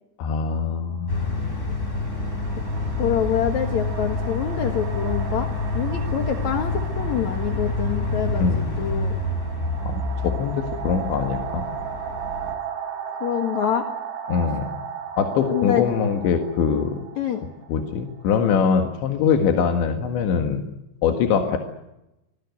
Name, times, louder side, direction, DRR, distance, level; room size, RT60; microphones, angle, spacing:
voice 1, 0.2-1.5 8.4-8.6 9.8-11.7 14.3-14.7 15.2-17.0 17.7-20.6 21.0-21.6, left 6 dB, 75° left, 4 dB, 4.0 m, -23 dB
sound 1, 0.8-1.0 1.9-18.6, right 8 dB, 55° right, 4.9 m, -36 dB
sound 2, 1.1-12.5, left 2 dB, 15° left, 4.5 m, -27 dB
voice 2, 3.0-5.5 5.7-9.2 13.2-13.9 15.5-15.8 17.2-17.4, left 9 dB, 55° left, 4 dB, 2.2 m, -26 dB
26.5 x 19.5 x 9.4 m, 0.93 s
omnidirectional pair, 5.3 m